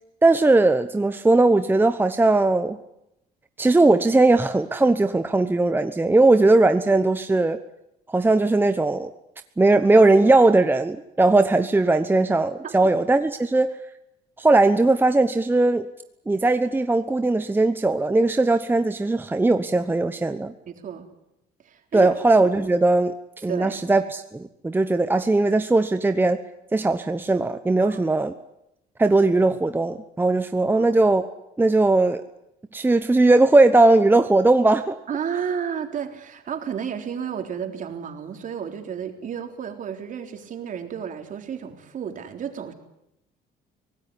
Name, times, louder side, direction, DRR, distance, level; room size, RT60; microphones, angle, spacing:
voice 1, 0.2-2.8 3.6-7.6 8.1-9.1 9.6-13.8 14.4-15.9 16.3-20.5 21.9-23.1 23.4-26.4 26.7-28.3 29.0-31.3 31.6-32.2 32.7-34.9, right 2 dB, 10° right, 9 dB, 1.0 m, -19 dB
voice 2, 20.7-21.1 21.7-22.1 23.5-23.8 27.8-28.0 30.7-30.9 35.1-42.7, right 7 dB, 50° right, 4 dB, 3.9 m, -32 dB
25.0 x 18.0 x 9.9 m, 0.84 s
cardioid pair, 110°, 17 cm